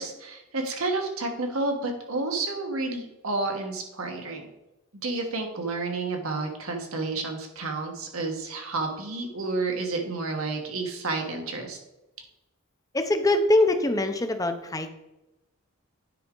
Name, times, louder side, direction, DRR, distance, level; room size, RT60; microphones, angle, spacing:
voice 1, 0.0-4.5 5.0-11.8, right 3 dB, 75° right, 3 dB, 1.4 m, -30 dB
voice 2, 12.9-14.9, left 2 dB, 15° left, 7 dB, 0.6 m, -23 dB
9.7 x 4.8 x 3.8 m, 0.96 s
head